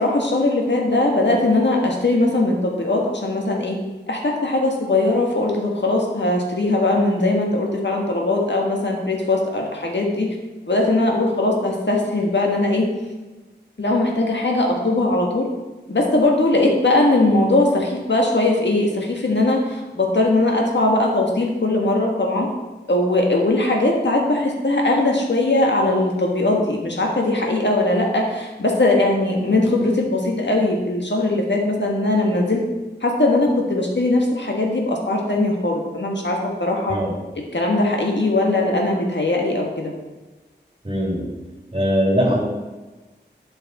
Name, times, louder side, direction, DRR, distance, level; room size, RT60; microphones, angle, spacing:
voice 1, 0.0-3.8 4.1-10.4 10.7-12.9 13.8-15.5 15.9-22.5 22.9-32.6 33.0-37.0 37.5-39.9, left 2 dB, 80° left, 0 dB, 1.7 m, -20 dB
voice 2, 40.8-41.2 41.7-42.4, equal, 30° right, -9 dB, 3.3 m, -20 dB
11.5 x 5.8 x 4.1 m, 1.2 s
wide cardioid pair, 55°, 18 cm